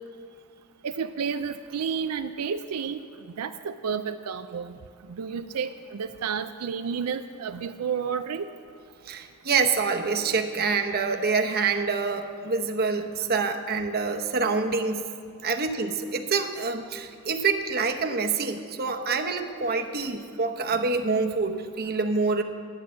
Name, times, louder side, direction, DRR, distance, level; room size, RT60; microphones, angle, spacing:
voice 1, 0.8-3.0 3.4-4.7 5.1-8.5, right 6 dB, 85° right, 9 dB, 0.4 m, -31 dB
voice 2, 9.0-15.1 15.4-22.4, right 4 dB, 45° right, 5 dB, 0.8 m, -26 dB
11.5 x 9.7 x 7.5 m, 2.2 s
head